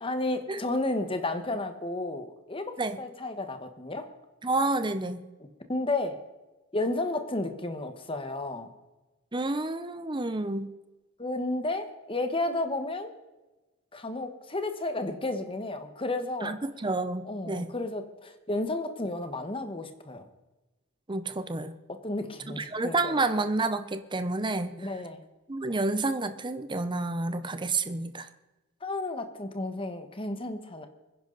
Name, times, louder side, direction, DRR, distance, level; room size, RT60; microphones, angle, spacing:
voice 1, 0.0-4.1 5.7-6.2 6.7-8.7 11.2-13.1 13.9-16.5 17.2-20.3 21.9-23.2 24.8-25.3 28.8-30.9, left 2 dB, 25° left, 8 dB, 1.3 m, -32 dB
voice 2, 4.4-5.3 9.3-10.7 16.4-17.7 21.1-21.7 22.6-24.8 25.5-28.3, right 2 dB, 20° right, 10 dB, 0.7 m, -29 dB
24.0 x 10.5 x 4.0 m, 1.1 s
head